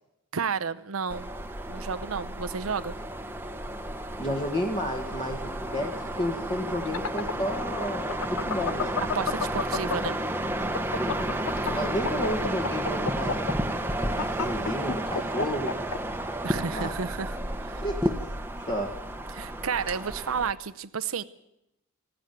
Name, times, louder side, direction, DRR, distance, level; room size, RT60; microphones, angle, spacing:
voice 1, 0.3-1.3 1.7-3.0 9.0-10.2 11.6-11.8 16.4-17.8 19.3-21.2, right 6 dB, 70° right, 12 dB, 0.7 m, -32 dB
sound 1, 1.1-20.5, right 1 dB, 10° right, 1.0 m, -32 dB
voice 2, 4.2-9.0 10.6-11.3 11.7-13.5 14.0-15.7 16.7-16.9 17.8-18.1 18.6-18.9, equal, 30° left, 0 dB, 1.8 m, -32 dB
sound 2, 6.7-10.3 10.6-16.0, left 6 dB, 70° left, 0.7 m, -30 dB
18.5 x 15.0 x 9.3 m, 0.86 s
head